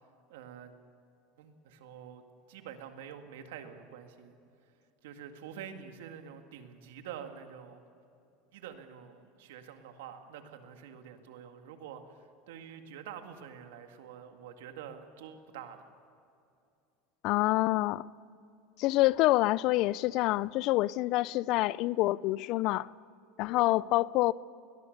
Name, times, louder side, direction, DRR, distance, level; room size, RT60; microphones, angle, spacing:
voice 1, 0.3-0.7 1.4-2.2 2.5-4.4 5.0-7.8 8.5-15.9, right 8 dB, 85° right, 2.0 m, -47 dB
voice 2, 17.2-18.1 18.8-22.9 23.4-24.3, left 18 dB, 55° left, 0.4 m, -27 dB
21.0 x 20.0 x 6.6 m
supercardioid pair, 130°, 0 cm